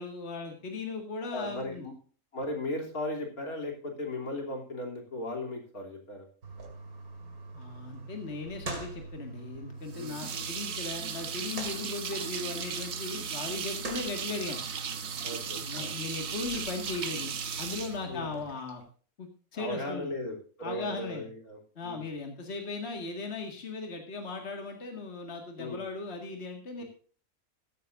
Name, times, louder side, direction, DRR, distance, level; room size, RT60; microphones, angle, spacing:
voice 1, 0.0-1.8 7.5-14.6 15.6-18.8 19.2-20.1 20.6-21.2 21.8-26.8, left 3 dB, 45° left, 3 dB, 2.3 m, -38 dB
voice 2, 1.3-1.9 2.3-6.3 9.9-10.5 15.2-15.9 18.1-18.3 19.6-22.0 25.6-25.8 26.8-26.9, left 1 dB, 75° left, 1 dB, 3.7 m, -37 dB
sound 1, 6.4-18.4, right 3 dB, 80° right, 2.8 m, -44 dB
sound 2, 9.9-18.7, right 7 dB, 65° right, 1.5 m, -37 dB
15.5 x 13.0 x 2.6 m, 0.41 s
omnidirectional pair, 1.6 m